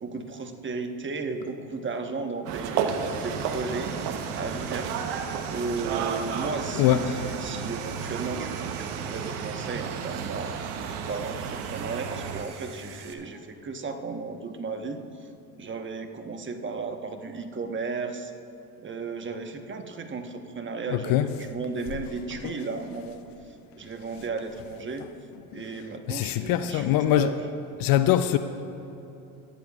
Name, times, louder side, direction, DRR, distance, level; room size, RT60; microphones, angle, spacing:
voice 1, 0.0-4.9 5.5-10.5 11.0-15.3 15.6-18.3 18.8-23.2 23.7-25.1 25.5-27.4, right 4 dB, 25° right, 1.3 m, -34 dB
sound 1, 2.5-12.4, right 7 dB, 60° right, 1.1 m, -32 dB
Sawing, 2.9-13.1, right 7 dB, 85° right, 1.1 m, -44 dB
voice 2, 6.8-7.2 20.9-21.3 22.4-22.5 25.5-25.6 26.1-27.3 27.8-28.4, left 13 dB, 50° left, 0.6 m, -23 dB
24.5 x 10.5 x 2.5 m
hypercardioid pair, 75°, 44 cm